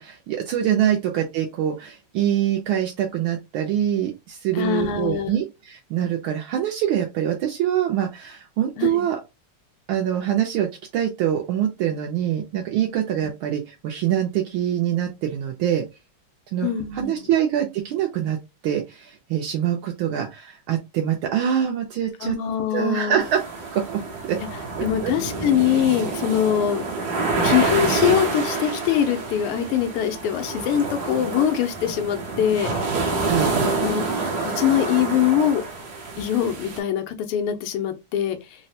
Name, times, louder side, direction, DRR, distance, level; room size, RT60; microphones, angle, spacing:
voice 1, 0.0-9.2 9.9-10.7 10.9-15.9 16.5-22.4 22.7-23.4 23.7-24.4 24.8-25.1 33.2-33.5, right 10 dB, 75° right, 1.3 m, -24 dB
voice 2, 4.5-5.3 8.8-9.1 16.6-17.3 22.2-23.2 24.8-26.8 27.4-32.7 33.7-34.0 34.4-35.6 36.2-38.4, left 10 dB, 90° left, 1.6 m, -23 dB
sound 1, 23.2-36.8, right 3 dB, 60° right, 1.1 m, -27 dB
3.9 x 2.1 x 2.6 m
omnidirectional pair, 2.4 m